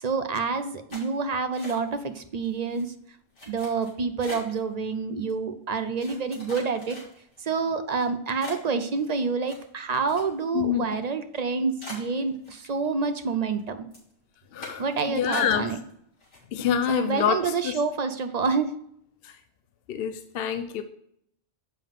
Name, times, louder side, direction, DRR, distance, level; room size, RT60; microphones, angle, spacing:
voice 1, 0.0-2.9 3.5-7.0 7.4-13.8 14.8-15.8 16.9-18.7, right 4 dB, 45° right, 9 dB, 0.6 m, -28 dB
sound 1, 0.9-2.1 2.4-2.8 3.3-4.6 5.3-5.4 6.0-7.4 7.9-8.0 8.4-10.6 10.9-11.0 11.4-11.5 11.8-12.9 13.2-13.6 13.9-14.1 14.6-14.9 15.3-15.9 16.2-16.8 17.2-17.3 17.6-17.9, left 2 dB, 90° left, 3.0 m, -43 dB
voice 2, 10.5-11.0 14.5-15.7 16.5-17.8 19.2-19.4 19.9-20.8, left 8 dB, 60° left, 8 dB, 0.7 m, -27 dB
7.4 x 5.5 x 3.6 m, 0.70 s
omnidirectional pair, 1.2 m